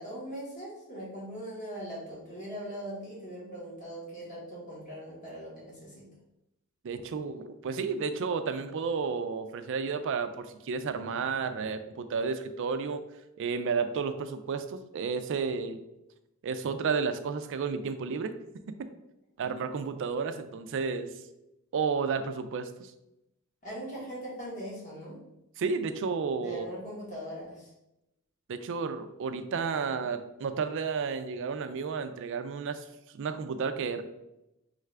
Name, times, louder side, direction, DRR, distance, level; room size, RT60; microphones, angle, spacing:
voice 1, 0.0-6.1 23.6-25.2 26.4-27.6, equal, 35° left, -6 dB, 1.3 m, -40 dB
voice 2, 6.8-13.0 13.4-15.8 16.4-18.3 19.4-21.1 21.7-22.9 25.6-26.7 28.5-32.8 33.1-34.0, right 5 dB, 55° right, 10 dB, 0.4 m, -32 dB
5.5 x 2.4 x 3.2 m, 0.90 s
head